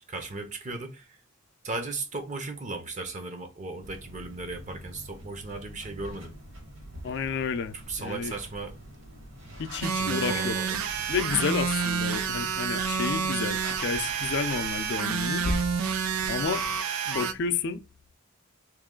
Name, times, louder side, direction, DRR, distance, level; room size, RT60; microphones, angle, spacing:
voice 1, 0.1-1.2 1.6-6.4 7.9-8.7 10.0-10.8, right 3 dB, 35° right, 0.7 m, -36 dB
sound 1, 3.8-16.8, equal, 65° right, 1.7 m, -44 dB
voice 2, 7.0-8.3 9.6-10.6 11.1-15.7 16.3-16.6 17.1-17.8, left 5 dB, 55° left, 0.4 m, -30 dB
sound 2, 9.8-17.3, right 6 dB, 85° right, 0.5 m, -29 dB
3.1 x 3.0 x 3.7 m
head